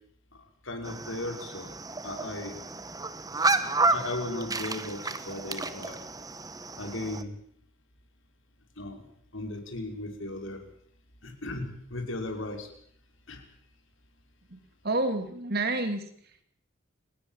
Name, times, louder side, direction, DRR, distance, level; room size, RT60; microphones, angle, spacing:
voice 1, 0.3-1.7 2.0-2.6 3.9-6.0 6.8-7.3 8.8-10.6 11.2-12.7 13.3-13.4, left 2 dB, 60° left, 4 dB, 5.7 m, -36 dB
sound 1, 0.8-7.2, right 3 dB, 15° right, 1.4 m, -31 dB
voice 2, 14.8-16.4, right 2 dB, 45° right, 8 dB, 3.2 m, -30 dB
29.5 x 18.5 x 7.5 m, 0.65 s
head